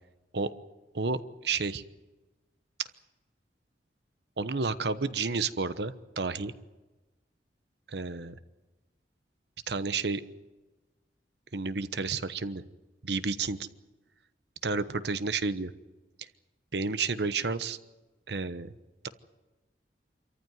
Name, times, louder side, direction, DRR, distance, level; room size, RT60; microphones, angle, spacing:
voice 1, 0.9-1.8 4.4-6.5 7.9-8.4 9.7-10.2 11.5-12.6 13.0-13.7 14.6-15.7 16.2-16.3 16.7-17.8 18.3-18.7, right 4 dB, 70° right, 13 dB, 1.0 m, -31 dB
26.5 x 14.5 x 9.4 m, 1.1 s
head